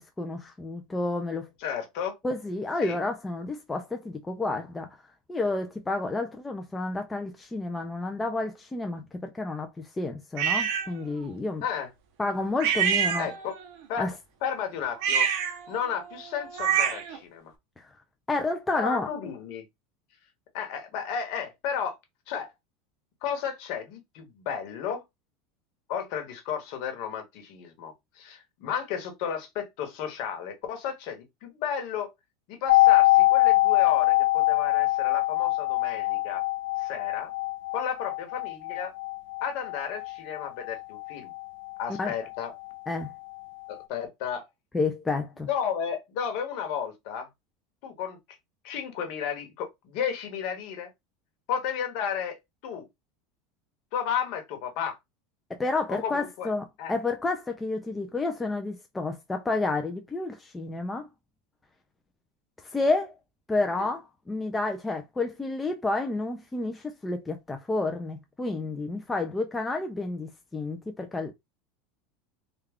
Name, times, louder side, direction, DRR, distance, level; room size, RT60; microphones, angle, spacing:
voice 1, 0.0-1.5 2.2-5.0 5.3-11.6 12.2-13.3 14.0-14.1 17.8-18.0 18.3-19.1 42.0-42.1 42.9-43.1 44.7-45.5 55.5-61.1 62.6-63.2 63.5-71.3, left 2 dB, 10° left, 0.3 m, -30 dB
voice 2, 1.6-2.1 2.8-3.0 11.6-11.9 13.2-13.6 13.9-14.1 14.4-15.3 15.7-17.5 18.7-19.6 20.5-22.0 22.3-22.5 23.2-25.0 25.9-32.1 32.5-36.4 36.8-37.3 37.7-38.9 39.4-41.3 41.8-42.5 43.7-44.5 45.5-47.3 47.8-48.2 48.6-50.9 51.5-52.4 52.6-52.8 53.9-55.0 55.9-56.5 56.8-56.9, left 8 dB, 45° left, 1.0 m, -33 dB
sound 1, 10.4-10.9 12.6-13.7 14.9-17.2, right 8 dB, 50° right, 0.7 m, -27 dB
sound 2, 32.7-42.4 42.7-42.8, left 19 dB, 85° left, 0.4 m, -24 dB
3.4 x 2.2 x 3.4 m
supercardioid pair, 175°, 0 cm